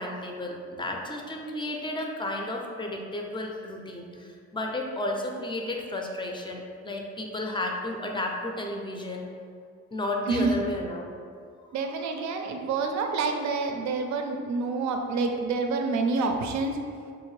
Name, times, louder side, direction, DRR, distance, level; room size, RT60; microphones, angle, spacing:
voice 1, 0.0-9.3 9.9-11.1, left 1 dB, 15° left, 1 dB, 0.4 m, -33 dB
voice 2, 11.7-16.8, right 4 dB, 70° right, 4 dB, 0.5 m, -27 dB
3.7 x 2.5 x 3.2 m, 2.2 s
cardioid pair, 90°, 30 cm